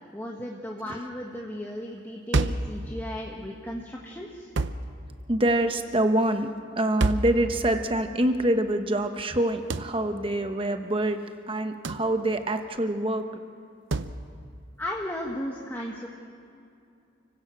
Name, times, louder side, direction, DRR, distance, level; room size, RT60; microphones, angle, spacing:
voice 1, 0.1-4.5 14.8-16.1, left 1 dB, 10° left, -1 dB, 1.3 m, -35 dB
sound 1, 2.3-2.8 4.6-4.9 7.0-7.4 9.7-10.0 11.8-12.1 13.9-14.2, right 3 dB, 65° right, 0.7 m, -26 dB
voice 2, 5.3-6.5 6.8-11.2 11.5-13.4, right 1 dB, 25° right, 7 dB, 1.0 m, -25 dB
29.5 x 16.5 x 6.2 m, 2.5 s
head